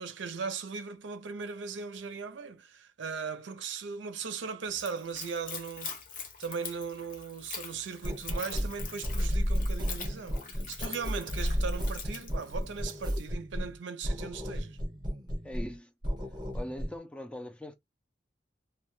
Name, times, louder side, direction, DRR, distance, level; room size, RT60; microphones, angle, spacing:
voice 1, 0.0-5.9 6.4-14.8, right 5 dB, 90° right, 0.5 m, -38 dB
Splash splatter / Trickle dribble, 4.7-13.1, left 6 dB, 50° left, 0.7 m, -44 dB
sound 1, 8.0-13.8 14.0-15.8 16.0-17.0, equal, 25° right, 0.7 m, -33 dB
voice 2, 15.4-15.9 16.5-17.7, left 1 dB, 5° left, 0.4 m, -41 dB
2.2 x 2.2 x 2.9 m
head